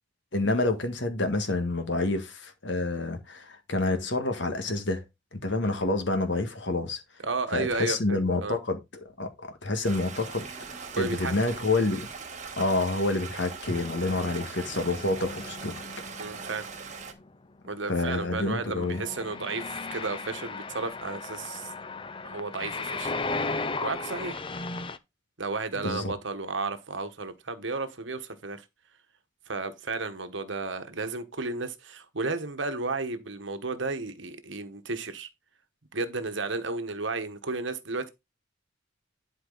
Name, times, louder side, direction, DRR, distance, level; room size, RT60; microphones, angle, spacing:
voice 1, 0.3-5.0 5.3-7.0 7.5-8.8 9.2-10.5 11.0-12.1 12.6-15.9 17.9-19.0 25.8-26.1, left 2 dB, 65° left, 1.7 m, -28 dB
voice 2, 7.2-8.6 10.9-11.3 14.2-14.4 16.2-16.6 17.6-21.7 22.2-23.1 23.8-24.4 25.4-28.6 29.5-35.3 35.9-38.1, right 3 dB, 70° right, 1.3 m, -33 dB
Stream, 9.8-17.1, right 5 dB, 40° right, 1.5 m, -40 dB
sound 1, 10.3-12.0 13.6-25.0, left 3 dB, 25° left, 0.6 m, -37 dB
11.5 x 4.7 x 4.0 m
head